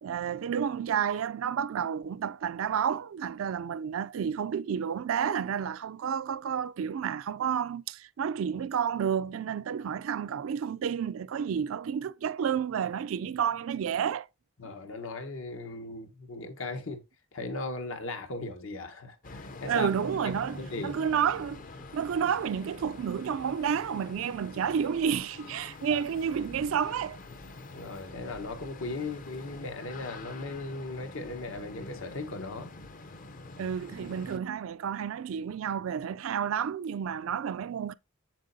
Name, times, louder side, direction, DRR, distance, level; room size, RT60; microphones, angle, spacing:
voice 1, 0.0-14.3 19.6-21.6 21.9-27.2 33.6-37.9, right 7 dB, 80° right, 0.4 m, -30 dB
voice 2, 14.6-17.0 17.3-19.9 20.2-20.3 20.6-21.0 25.9-26.0 27.7-32.7, left 2 dB, 75° left, 1.2 m, -37 dB
sound 1, 19.2-34.4, left 2 dB, 40° left, 0.6 m, -46 dB
7.4 x 7.4 x 2.7 m
head